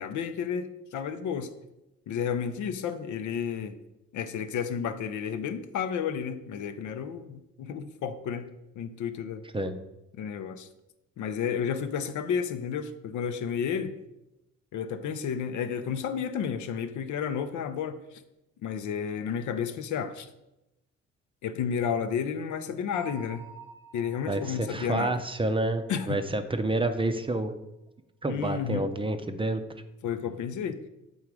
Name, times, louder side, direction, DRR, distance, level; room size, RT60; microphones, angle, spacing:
voice 1, 0.0-1.5 2.1-3.8 4.1-9.4 10.2-10.7 11.2-13.9 14.7-18.2 18.6-20.3 21.4-23.4 23.9-25.2 25.9-26.2 28.3-28.9 30.0-30.8, left 7 dB, 75° left, 10 dB, 0.6 m, -32 dB
Bell, 22.9-26.6, right 4 dB, 15° left, 1.0 m, -50 dB
voice 2, 24.3-27.6 28.2-29.6, right 2 dB, 20° right, 8 dB, 0.5 m, -29 dB
7.3 x 3.8 x 4.7 m, 0.92 s
cardioid pair, 90°, 30 cm